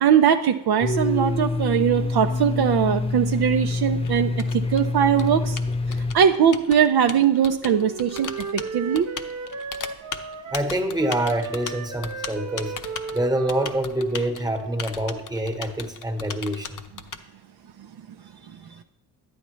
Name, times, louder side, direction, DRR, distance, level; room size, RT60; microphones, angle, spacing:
voice 1, 0.0-5.6 6.1-9.1, right 8 dB, 55° right, 6 dB, 0.6 m, -20 dB
Domestic sounds home sounds, 0.8-6.2, left 3 dB, 15° left, 0.4 m, -26 dB
Typing, 2.5-17.2, left 6 dB, 45° left, 0.7 m, -37 dB
Wind instrument woodwind instrument, 7.2-10.7 11.0-14.8, right 4 dB, 40° right, 1.0 m, -36 dB
voice 2, 10.5-12.7 13.1-16.8, right 1 dB, 10° right, 6 dB, 1.2 m, -26 dB
9.8 x 8.6 x 3.1 m, 0.89 s
supercardioid pair, 60°, 45 cm